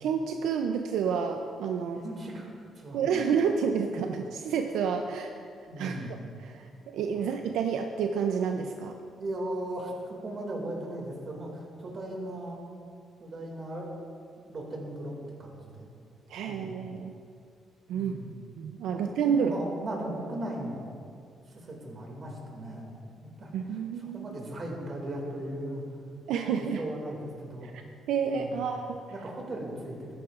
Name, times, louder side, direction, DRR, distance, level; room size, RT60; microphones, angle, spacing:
voice 1, 0.0-2.0 2.9-5.3 5.8-6.0 6.4-9.0 16.3-17.1 17.9-19.5 23.5-24.2 26.3-26.8 27.6-27.8 28.1-29.0, right 6 dB, 85° right, 5 dB, 0.4 m, -29 dB
voice 2, 2.0-3.3 3.9-4.0 5.7-6.2 7.1-7.2 9.1-12.6 13.2-13.9 14.5-15.9 16.4-16.9 17.9-18.3 18.9-20.8 21.5-22.9 23.2-23.5 24.0-25.8 26.4-27.8 28.3-28.6 29.1-30.1, right 1 dB, 45° right, 0 dB, 2.2 m, -38 dB
13.0 x 10.5 x 2.5 m, 2.4 s
cardioid pair, 90°, 0 cm